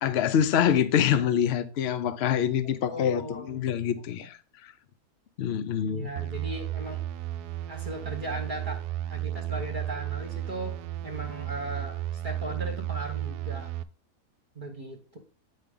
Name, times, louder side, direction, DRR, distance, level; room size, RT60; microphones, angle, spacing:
voice 1, 0.0-4.4 4.6-4.7 5.4-6.1, left 9 dB, 55° left, 0.7 m, -25 dB
voice 2, 2.9-3.6 5.8-7.0 7.7-10.7 11.0-13.7 14.5-15.2, right 1 dB, 35° right, 1.2 m, -37 dB
sound 1, 6.2-13.8, right 13 dB, 85° right, 1.1 m, -34 dB
8.4 x 5.5 x 3.8 m
omnidirectional pair, 1.6 m